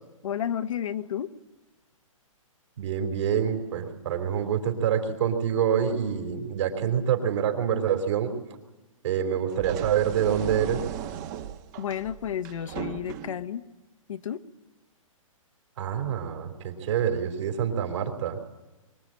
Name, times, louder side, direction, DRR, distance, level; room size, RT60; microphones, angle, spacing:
voice 1, 0.2-1.3 11.8-13.6 14.1-14.4, left 9 dB, 70° left, 10 dB, 1.2 m, -31 dB
voice 2, 2.8-8.4 9.0-10.8 15.8-18.4, right 8 dB, 55° right, 5 dB, 3.7 m, -26 dB
sound 1, 9.5-13.5, right 10 dB, 35° right, 1.2 m, -37 dB
24.0 x 23.5 x 8.9 m, 1.1 s
hypercardioid pair, 150°, 18 cm